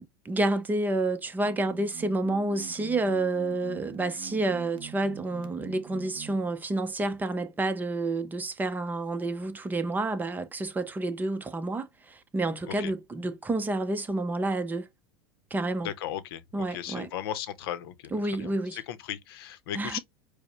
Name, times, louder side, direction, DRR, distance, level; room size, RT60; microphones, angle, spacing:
voice 1, 0.0-14.9 15.5-15.9 16.5-17.1 18.1-18.8 19.7-20.0, right 2 dB, 15° right, 0.7 m, -29 dB
sound 1, 1.2-6.5, right 11 dB, 50° right, 0.9 m, -45 dB
voice 2, 15.8-16.4 16.7-20.0, left 11 dB, 75° left, 0.7 m, -36 dB
4.9 x 2.1 x 3.0 m
supercardioid pair, 110°, 12 cm